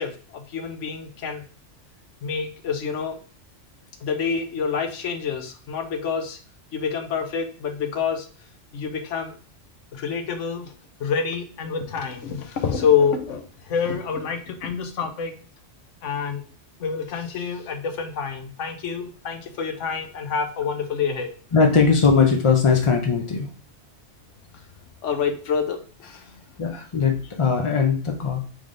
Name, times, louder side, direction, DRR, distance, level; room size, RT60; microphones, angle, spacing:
voice 1, 0.0-1.4 2.2-3.2 4.0-6.4 6.7-8.3 8.7-9.4 9.9-10.7 11.0-15.3 16.0-16.4 16.8-21.3 25.0-26.4, left 6 dB, 90° left, 6 dB, 1.1 m, -27 dB
voice 2, 21.5-23.5 26.6-28.4, left 5 dB, 50° left, 2 dB, 0.4 m, -19 dB
3.6 x 3.3 x 3.7 m, 0.40 s
omnidirectional pair, 1.2 m